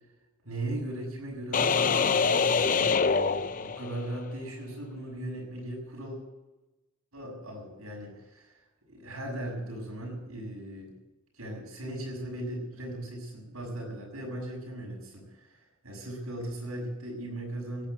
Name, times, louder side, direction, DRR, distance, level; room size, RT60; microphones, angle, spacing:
voice 1, 0.4-6.2 7.1-8.6 8.9-10.9 11.3-17.9, right 1 dB, 80° right, -1 dB, 6.8 m, -38 dB
sound 1, 1.5-4.2, left 5 dB, 40° left, 0.6 m, -25 dB
17.0 x 9.3 x 8.2 m, 1.1 s
head